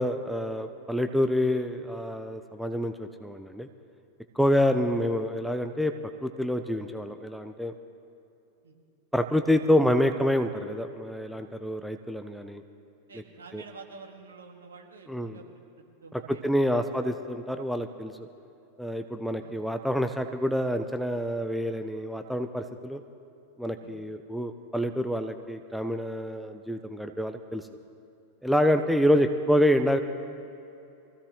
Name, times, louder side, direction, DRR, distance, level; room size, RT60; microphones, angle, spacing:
voice 1, 0.0-3.7 4.3-5.9 6.2-7.7 9.1-12.6 13.1-13.2 13.5-13.6 15.1-15.4 16.1-18.3 18.8-23.0 23.6-27.6 28.4-30.0, equal, ahead, 7 dB, 0.6 m, -27 dB
voice 2, 13.1-15.5 16.0-16.8 19.4-19.5 23.8-24.0, right 4 dB, 70° right, 2 dB, 1.9 m, -48 dB
23.5 x 15.5 x 3.1 m, 2.8 s
figure-of-eight pair, 90°, 0 cm